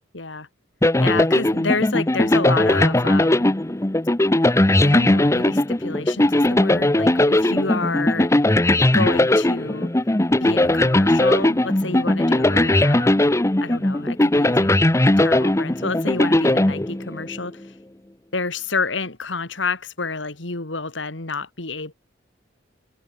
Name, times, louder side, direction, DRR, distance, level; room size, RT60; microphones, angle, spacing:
voice 1, 0.1-0.5 1.0-3.6 4.8-8.3 8.9-9.9 10.4-13.3 13.6-14.8 15.2-17.6 18.3-21.9, left 3 dB, 75° left, 2.7 m, -29 dB
sound 1, 0.8-17.4, left 1 dB, 15° left, 0.8 m, -18 dB
head